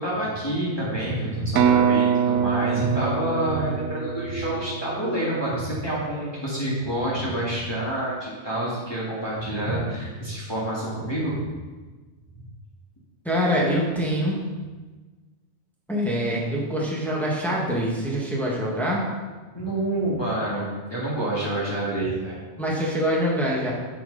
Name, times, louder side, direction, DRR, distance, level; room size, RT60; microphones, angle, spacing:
voice 1, 0.0-11.4 19.5-22.4, right 1 dB, 20° left, -8 dB, 1.9 m, -27 dB
sound 1, 1.6-5.3, right 8 dB, 80° right, 1.0 m, -24 dB
voice 2, 13.2-14.4 15.9-19.0 22.6-23.7, equal, ahead, -4 dB, 1.4 m, -24 dB
8.8 x 5.9 x 4.0 m, 1.3 s
omnidirectional pair, 1.4 m